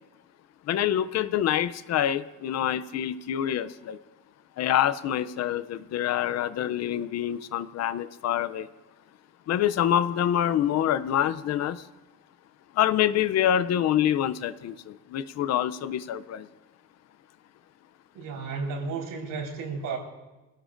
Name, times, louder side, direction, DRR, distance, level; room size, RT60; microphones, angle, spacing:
voice 1, 0.7-4.0 4.6-8.7 9.5-11.8 12.8-16.5, left 10 dB, 50° left, 15 dB, 0.5 m, -26 dB
voice 2, 18.1-20.0, right 4 dB, 70° right, -1 dB, 4.4 m, -33 dB
25.5 x 17.5 x 2.5 m, 1.1 s
cardioid pair, 170°, 33 cm